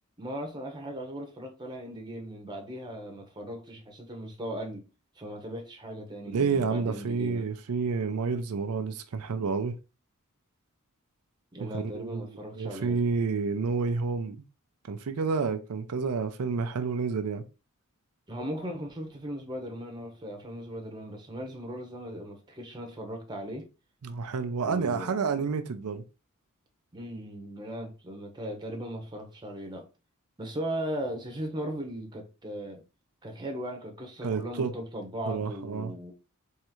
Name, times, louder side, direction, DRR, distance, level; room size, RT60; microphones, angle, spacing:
voice 1, 0.2-4.8 5.2-7.5 11.5-13.0 18.3-23.7 24.6-25.2 26.9-29.8 30.4-32.8 33.2-36.1, equal, 20° right, 0.9 m, -38 dB
voice 2, 6.3-9.8 11.6-12.3 12.6-14.4 14.9-17.4 24.0-26.0 34.2-34.7 35.3-35.9, right 5 dB, 90° right, 0.5 m, -29 dB
3.6 x 3.2 x 3.0 m
head